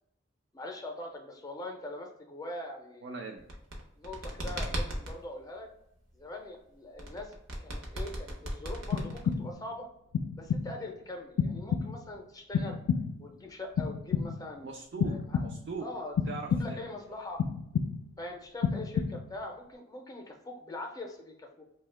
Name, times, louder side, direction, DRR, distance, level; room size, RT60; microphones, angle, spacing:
voice 1, 0.5-3.1 4.0-5.7 6.2-9.9 10.4-12.8 13.2-14.7 15.0-15.5 15.8-16.1 16.5-17.4 18.2-21.6, left 2 dB, 20° left, 2 dB, 0.4 m, -42 dB
voice 2, 3.0-3.4 14.6-15.9 16.3-16.8, right 4 dB, 55° right, 1 dB, 0.3 m, -40 dB
sound 1, 3.4-5.2 7.0-9.5, equal, 90° right, 0.7 m, -36 dB
sound 2, 8.9-9.7 10.1-10.9 11.4-12.2 12.5-13.3 13.8-14.6 15.0-15.8 16.2-17.0 17.4-18.2 18.6-19.4, left 6 dB, 85° left, 0.3 m, -31 dB
2.7 x 2.1 x 3.2 m, 0.77 s
head